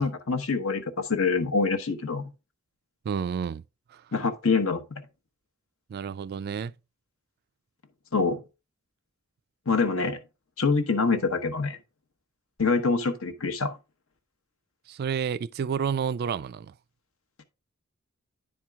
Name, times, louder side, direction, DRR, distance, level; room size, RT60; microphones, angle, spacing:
voice 1, 0.0-2.3 4.1-5.0 8.1-8.4 9.7-10.2 10.6-11.8 12.6-13.8, left 4 dB, 70° left, 1.0 m, -25 dB
voice 2, 3.1-3.6 3.9-4.0 5.9-6.7 14.9-16.7, right 7 dB, 50° right, 0.3 m, -30 dB
10.0 x 4.5 x 3.5 m
head